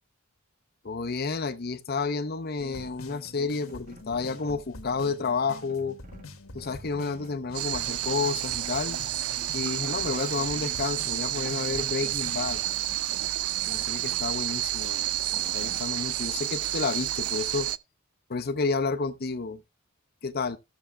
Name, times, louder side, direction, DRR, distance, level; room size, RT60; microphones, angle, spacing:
voice 1, 0.8-6.0 6.5-9.0 9.5-12.6 13.7-17.7 18.3-19.6 20.2-20.6, left 4 dB, 50° left, 0.8 m, -30 dB
sound 1, 2.6-12.6, left 2 dB, 90° left, 1.5 m, -45 dB
sound 2, 2.8-4.7 5.6-7.4 7.7-8.2 9.4-9.5 9.9-11.2 11.6-12.9 13.2-14.4 14.8-15.8, right 1 dB, 40° right, 1.5 m, -52 dB
sound 3, 7.5-17.8, right 14 dB, 85° right, 0.4 m, -30 dB
14.5 x 7.1 x 2.3 m
head